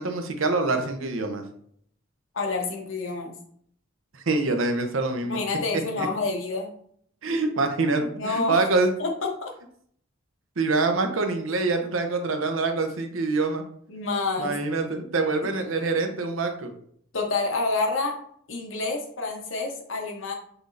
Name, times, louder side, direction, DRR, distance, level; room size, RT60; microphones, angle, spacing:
voice 1, 0.0-1.4 4.1-5.4 6.0-6.1 7.2-8.9 10.6-13.6 14.4-16.7, right 3 dB, 80° right, 6 dB, 0.7 m, -25 dB
voice 2, 2.3-3.4 5.2-6.7 7.9-8.6 9.0-9.5 13.9-14.5 15.5-15.6 17.1-18.2 18.5-20.3, left 3 dB, 70° left, 2 dB, 0.9 m, -28 dB
5.9 x 3.3 x 2.6 m, 0.64 s
head